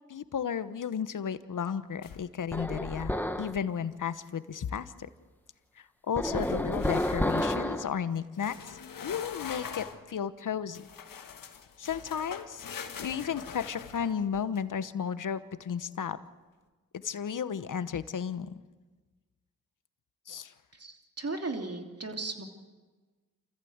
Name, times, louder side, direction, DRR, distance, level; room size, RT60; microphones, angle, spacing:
voice 1, 0.1-4.9 5.8-10.9 11.8-12.7 13.0-16.2 16.9-18.6 20.3-20.5, left 7 dB, 65° left, 13 dB, 1.1 m, -34 dB
sound 1, 2.0-2.5 2.9-3.3 6.3-7.6 8.4-10.0 10.7-14.6, left 7 dB, 80° left, 1.6 m, -43 dB
sound 2, 2.5-3.6 6.2-7.9, left 1 dB, 5° left, 1.7 m, -30 dB
voice 2, 20.7-22.4, right 3 dB, 45° right, 4 dB, 3.1 m, -36 dB
28.0 x 14.5 x 8.1 m, 1.3 s
cardioid pair, 50°, 33 cm